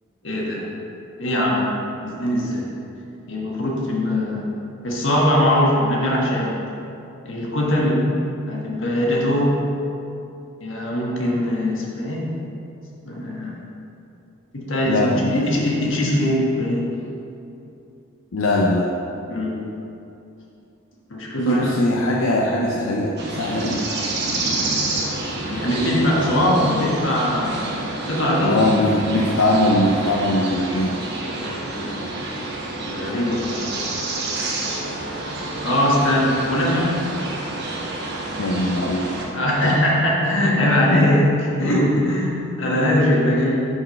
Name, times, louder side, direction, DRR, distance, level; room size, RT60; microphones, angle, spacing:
voice 1, 0.2-0.6 1.2-1.7 2.0-2.7 3.3-4.4 4.8-6.6 7.2-8.0 8.5-9.6 10.6-12.3 13.0-13.6 14.5-16.9 19.3-19.6 21.1-21.8 25.5-28.6 29.0-29.1 31.7-32.0 32.8-33.7 34.2-34.4 35.6-37.0 39.3-43.5, left 1 dB, 65° left, -4 dB, 1.5 m, -21 dB
voice 2, 14.8-15.5 18.3-18.9 21.4-23.8 28.4-31.0 38.4-39.2 39.6-39.8 40.9-41.3, left 1 dB, 80° left, -1 dB, 0.6 m, -21 dB
sound 1, 23.2-39.2, right 2 dB, 50° right, 1.0 m, -28 dB
6.3 x 4.6 x 5.7 m, 2.7 s
head